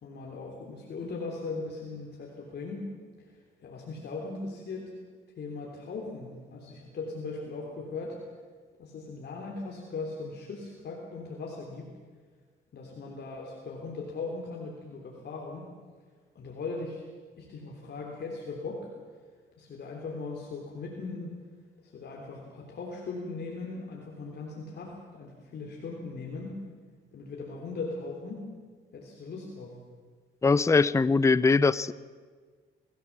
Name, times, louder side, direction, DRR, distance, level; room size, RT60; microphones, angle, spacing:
voice 1, 0.0-2.8 3.2-4.9 5.4-8.2 8.8-11.9 12.7-15.7 16.3-17.0 17.4-18.9 19.6-21.4 21.8-26.5 27.1-28.5 28.9-29.8, left 3 dB, 55° left, -1 dB, 3.4 m, -39 dB
voice 2, 30.4-31.9, left 4 dB, 15° left, 18 dB, 0.5 m, -22 dB
22.5 x 16.5 x 7.3 m, 1.5 s
cardioid pair, 90°, 20 cm